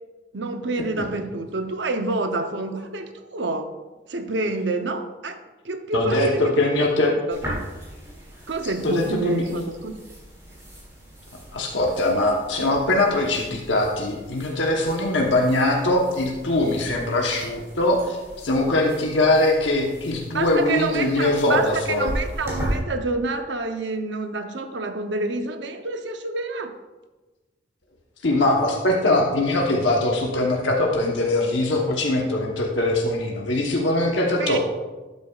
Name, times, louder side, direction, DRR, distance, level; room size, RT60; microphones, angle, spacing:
voice 1, 0.3-3.7 4.1-5.4 5.6-6.9 7.3-7.4 8.5-9.9 20.3-26.7 34.4-34.6, right 2 dB, 75° right, 7 dB, 0.8 m, -28 dB
voice 2, 5.9-7.1 8.8-9.4 11.5-22.1 28.2-34.6, left 2 dB, 80° left, 0 dB, 1.1 m, -22 dB
sound 1, 7.3-22.8, equal, 15° right, 2.9 m, -37 dB
12.5 x 8.2 x 2.4 m, 1.2 s
head